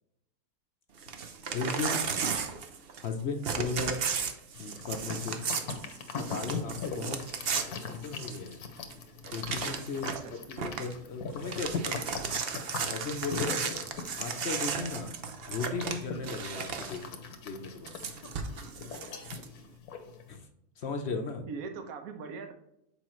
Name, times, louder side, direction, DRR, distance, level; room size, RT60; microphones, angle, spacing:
Crumpling crinkling / Tearing, 1.0-3.1 3.4-8.5 8.9-9.0 9.2-10.3 10.6-10.9 11.3-17.0 17.9-19.4, right 6 dB, 55° right, 0.7 m, -35 dB
voice 1, 1.5-2.0 3.0-4.2 4.6-5.4 6.1-7.2 7.5-8.6 9.3-10.1 10.5-12.1 12.8-13.6 14.2-15.1 15.5-17.9 20.3-20.5 20.8-21.5, left 4 dB, 55° left, 5 dB, 0.8 m, -36 dB
sound 1, 4.5-20.3, left 5 dB, 70° left, 1.3 m, -41 dB
voice 2, 21.5-22.5, right 5 dB, 70° right, 6 dB, 1.3 m, -40 dB
7.2 x 4.8 x 3.1 m, 0.81 s
omnidirectional pair, 1.6 m